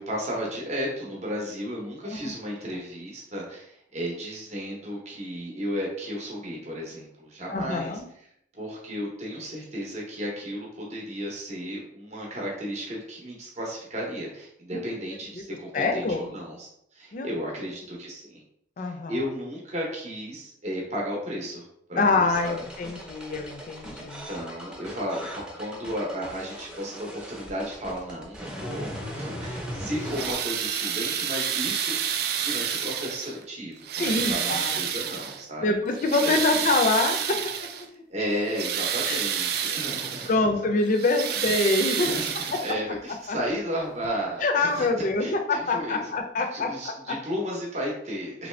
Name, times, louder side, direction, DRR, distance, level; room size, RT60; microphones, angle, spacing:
voice 1, 0.0-8.0 8.5-18.4 18.8-22.5 23.9-32.0 32.4-35.7 36.2-36.4 38.1-40.4 41.3-41.6 42.0-44.9 45.2-48.5, equal, 40° right, -2 dB, 0.7 m, -34 dB
voice 2, 7.5-8.1 15.7-16.2 17.1-17.3 18.8-19.2 22.0-24.3 34.0-34.8 35.6-37.4 39.1-39.2 40.3-42.1 42.5-42.6 43.3-43.4 44.4-47.1, left 3 dB, 45° left, 5 dB, 0.4 m, -25 dB
sound 1, 22.3-30.3, equal, 5° right, 0.6 m, -38 dB
sound 2, 30.0-33.4 33.8-35.4 35.9-37.9 38.3-40.4 40.8-43.0 44.0-44.1 44.8-44.9, right 8 dB, 60° right, 0.3 m, -29 dB
3.1 x 2.6 x 3.1 m, 0.73 s
head